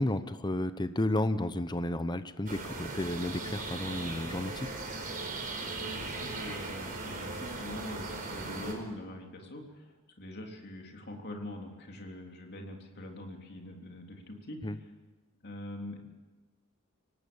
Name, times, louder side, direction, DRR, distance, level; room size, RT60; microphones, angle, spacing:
voice 1, 0.0-4.7 14.6-14.8, left 1 dB, 20° left, 11 dB, 0.8 m, -32 dB
sound 1, 2.5-8.7, right 3 dB, 40° right, 4.6 m, -38 dB
voice 2, 5.8-14.6 15.4-16.0, left 1 dB, 50° left, 2 dB, 3.5 m, -43 dB
25.0 x 18.0 x 7.2 m, 1.2 s
head